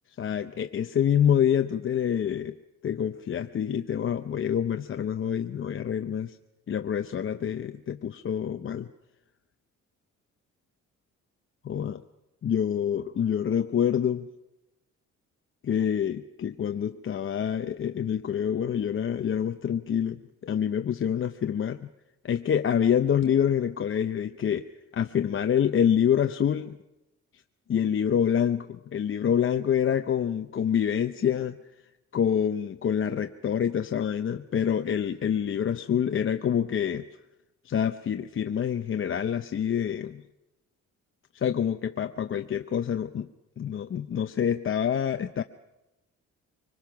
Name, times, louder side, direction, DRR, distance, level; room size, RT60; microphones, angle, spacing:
voice 1, 0.2-2.5 2.8-6.4 6.7-8.9 11.6-12.0 12.4-14.3 15.6-21.9 22.2-26.8 27.7-31.6 32.1-37.1 37.6-40.2 41.3-43.3 43.6-45.4, left 8 dB, 45° left, 7 dB, 0.7 m, -26 dB
24.5 x 20.5 x 5.9 m, 0.99 s
cardioid pair, 90°, 30 cm